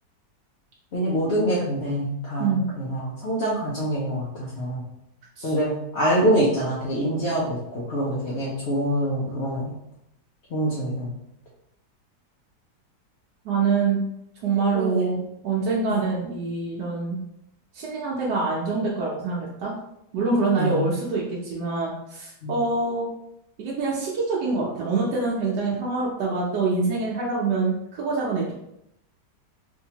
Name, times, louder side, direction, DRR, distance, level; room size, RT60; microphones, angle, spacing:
voice 1, 0.9-2.5 2.8-4.8 5.4-9.7 10.5-11.1 14.7-15.1 15.9-16.0 20.6-20.9 22.4-22.6, equal, 55° left, -6 dB, 0.8 m, -25 dB
voice 2, 13.4-14.0 14.4-17.2 17.7-19.7 20.1-23.1 23.6-28.5, right 4 dB, 75° right, -5 dB, 1.3 m, -25 dB
3.5 x 2.7 x 2.8 m, 0.80 s
omnidirectional pair, 1.8 m